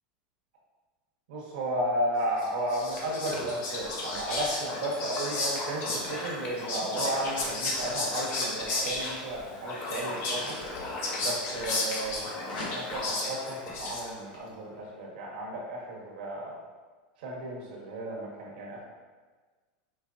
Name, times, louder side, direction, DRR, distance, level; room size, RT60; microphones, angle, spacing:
voice 1, 1.3-10.6 11.2-12.3 12.5-16.5 17.2-18.8, right 1 dB, 75° right, -3 dB, 1.3 m, -33 dB
Whispering, 2.4-14.3, left 2 dB, 50° left, 0.9 m, -33 dB
sound 1, 9.6-12.1 12.4-13.2, left 1 dB, 85° left, 1.0 m, -44 dB
5.3 x 3.1 x 2.5 m, 1.4 s
supercardioid pair, 120°, 5 cm